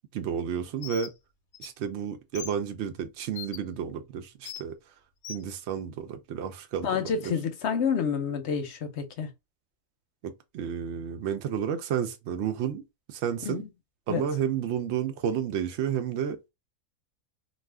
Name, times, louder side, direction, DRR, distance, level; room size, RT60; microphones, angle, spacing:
voice 1, 0.1-1.1 1.6-4.8 5.3-7.3 10.2-12.8 13.1-13.6 14.1-16.5, right 8 dB, 65° right, 0.7 m, -31 dB
Bird, 0.8-1.1 1.5-1.7 2.3-2.5 3.3-3.6 4.4-4.6 5.2-5.4, left 10 dB, 85° left, 1.0 m, -39 dB
voice 2, 6.8-9.3 13.4-13.7 14.1-14.2, left 6 dB, 60° left, 0.8 m, -29 dB
2.4 x 2.3 x 3.2 m
omnidirectional pair, 1.5 m